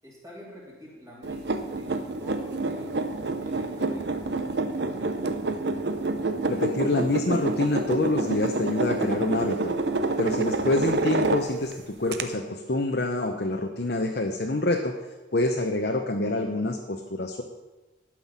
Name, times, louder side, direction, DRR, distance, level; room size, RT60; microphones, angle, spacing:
voice 1, 0.0-5.2, equal, 15° right, -4 dB, 3.2 m, -46 dB
sound 1, 1.2-11.7 12.1-12.2, right 3 dB, 60° right, 0.8 m, -28 dB
voice 2, 6.5-9.7 10.2-15.0 15.3-17.4, left 2 dB, 55° left, 3 dB, 0.8 m, -26 dB
12.0 x 6.0 x 7.3 m, 1.1 s
head